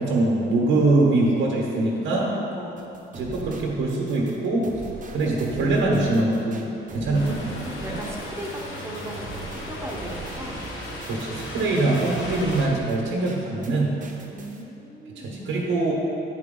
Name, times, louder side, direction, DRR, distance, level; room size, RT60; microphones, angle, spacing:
voice 1, 0.0-2.3 3.1-4.7 5.1-6.6 6.9-7.3 11.1-14.0 15.2-15.9, right 2 dB, 85° right, -3 dB, 1.2 m, -23 dB
voice 2, 1.7-2.9 7.0-10.6 14.3-15.5, right 1 dB, 15° right, -3 dB, 1.0 m, -37 dB
sound 1, 2.8-13.7 14.0-14.6, right 3 dB, 40° right, 0.9 m, -42 dB
sound 2, 7.1-12.7, left 1 dB, 80° left, 1.4 m, -36 dB
9.5 x 4.6 x 3.8 m, 3.0 s
cardioid pair, 90°, 20 cm